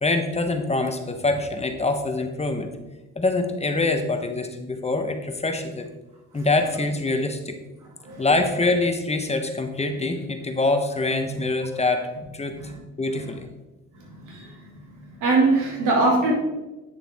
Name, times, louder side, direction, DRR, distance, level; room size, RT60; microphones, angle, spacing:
voice 1, 0.0-2.7 3.2-5.9 6.3-7.6 8.2-12.6 13.0-13.5, left 2 dB, 20° left, 6 dB, 1.0 m, -24 dB
voice 2, 14.0-14.5 15.2-16.3, right 3 dB, 85° right, -1 dB, 2.5 m, -22 dB
9.5 x 6.6 x 3.6 m, 1.1 s
cardioid pair, 90°, 30 cm